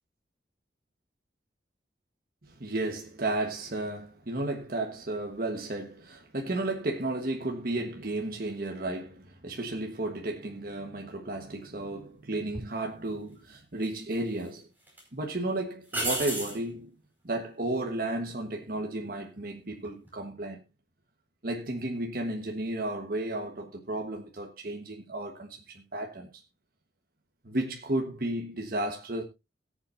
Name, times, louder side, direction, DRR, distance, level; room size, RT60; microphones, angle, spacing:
voice 1, 2.4-14.7 15.1-16.9 17.2-20.6 21.4-26.4 27.4-29.2, right 2 dB, 50° right, 1.4 m, -33 dB
sound 1, 12.5-12.7 13.8-14.5 14.9-15.0 15.9-16.6 19.7-20.1, right 1 dB, 10° right, 5.0 m, -33 dB
21.5 x 7.3 x 2.6 m
head